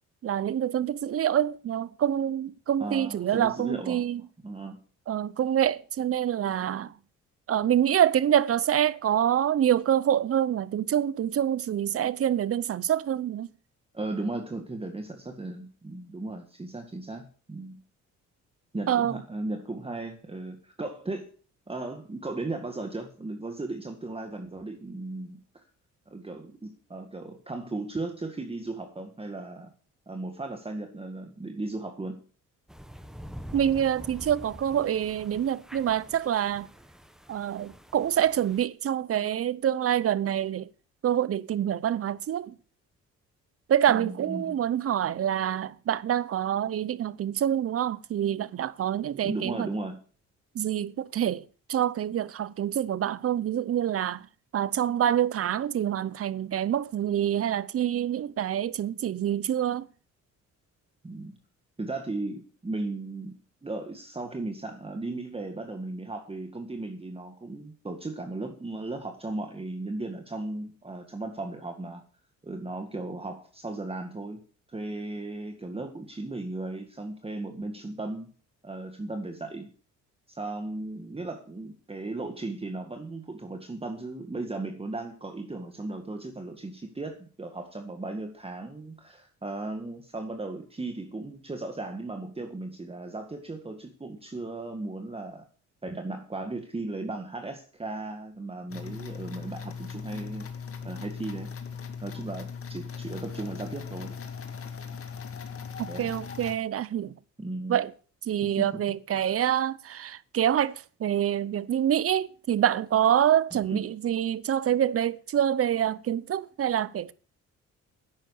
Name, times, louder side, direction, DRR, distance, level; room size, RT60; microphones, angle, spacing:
voice 1, 0.2-4.2 5.1-6.9 7.5-13.5 18.9-19.2 33.5-36.7 37.3-40.7 41.0-42.5 43.7-49.7 50.5-54.3 54.5-59.9 105.8-107.2 107.7-107.9 108.2-117.1, right 10 dB, 50° right, 0.8 m, -26 dB
voice 2, 2.8-4.0 4.4-4.8 13.9-17.8 18.7-21.3 21.7-25.6 26.1-29.7 30.1-32.2 43.9-44.6 49.2-50.0 61.0-61.4 61.8-72.0 72.4-74.4 74.7-78.3 78.6-79.7 80.3-95.4 95.8-100.5 100.8-101.5 102.0-104.2 105.9-106.1 107.4-107.8 108.4-108.7 109.1-109.3 113.5-113.8, right 2 dB, 20° right, 1.9 m, -36 dB
sound 1, 32.7-38.7, equal, ahead, 1.3 m, -46 dB
sound 2, 98.7-106.5, left 6 dB, 50° left, 2.1 m, -39 dB
11.0 x 8.8 x 6.6 m
cardioid pair, 90°, 30 cm